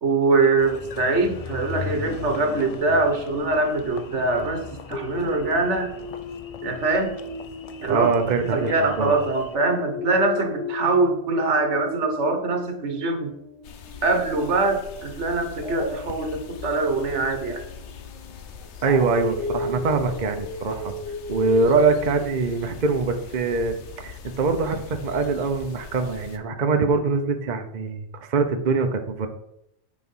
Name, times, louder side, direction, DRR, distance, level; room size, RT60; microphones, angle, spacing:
voice 1, 0.0-4.6 4.9-5.9 6.6-7.2 7.8-8.1 8.5-13.3 14.0-17.6, right 3 dB, 75° right, 5 dB, 1.5 m, -23 dB
Engine, 0.6-9.6, left 6 dB, 55° left, 0.4 m, -39 dB
Dog, 4.9-9.1 9.5-14.5 15.6-22.5, left 1 dB, 25° left, 1.3 m, -36 dB
voice 2, 7.9-9.2 18.8-20.9 21.3-29.3, right 4 dB, 45° right, 5 dB, 0.8 m, -23 dB
sound 1, 13.6-26.4, left 7 dB, 75° left, 1.1 m, -42 dB
8.3 x 4.8 x 5.4 m, 0.80 s
omnidirectional pair, 1.2 m